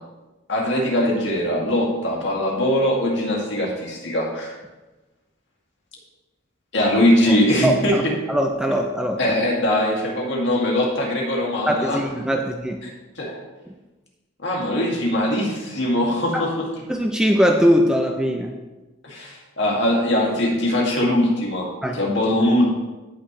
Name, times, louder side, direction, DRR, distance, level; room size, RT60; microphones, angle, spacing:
voice 1, 0.5-4.6 6.7-8.1 9.2-12.0 13.2-13.4 14.4-16.7 19.0-21.7 21.9-22.6, left 1 dB, 55° left, -2 dB, 2.3 m, -21 dB
voice 2, 7.6-8.0 8.3-9.2 11.7-12.8 16.3-16.4 16.9-18.5 21.8-22.0, equal, 5° right, 3 dB, 0.4 m, -21 dB
16.0 x 6.0 x 3.2 m, 1.1 s
head